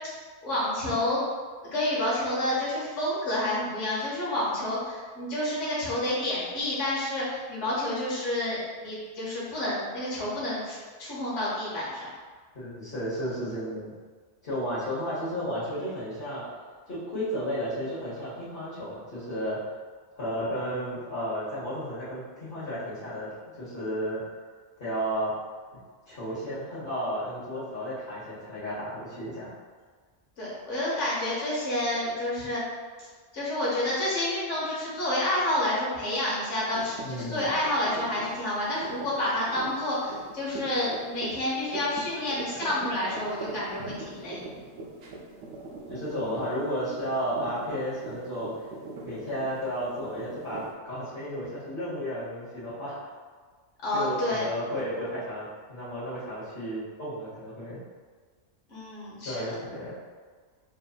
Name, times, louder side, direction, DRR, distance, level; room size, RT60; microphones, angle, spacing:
voice 1, 0.4-1.2 1.6-12.1 30.4-32.6 33.3-44.4 53.8-54.5 58.7-59.3, left 1 dB, 90° left, -8 dB, 1.3 m, -29 dB
voice 2, 12.5-13.9 14.4-16.5 16.9-19.7 20.1-23.3 23.6-24.2 24.8-25.3 26.1-29.5 37.0-37.5 45.9-48.7 49.0-53.0 53.9-57.8 59.2-60.0, equal, 50° left, -13 dB, 1.5 m, -33 dB
sound 1, 36.7-50.7, right 3 dB, 90° right, 1.0 m, -42 dB
6.0 x 2.7 x 2.4 m, 1.5 s
omnidirectional pair, 1.2 m